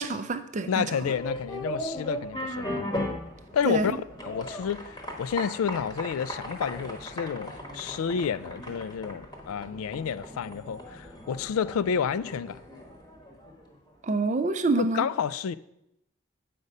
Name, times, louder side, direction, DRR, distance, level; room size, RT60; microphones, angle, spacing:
voice 1, 0.0-0.9 3.6-3.9 14.0-15.1, right 3 dB, 35° right, 0.4 m, -26 dB
voice 2, 0.7-2.8 3.5-12.6 14.8-15.5, left 7 dB, 80° left, 0.3 m, -30 dB
sound 1, 1.0-13.7, equal, 20° left, 1.1 m, -37 dB
8.1 x 5.1 x 5.4 m
head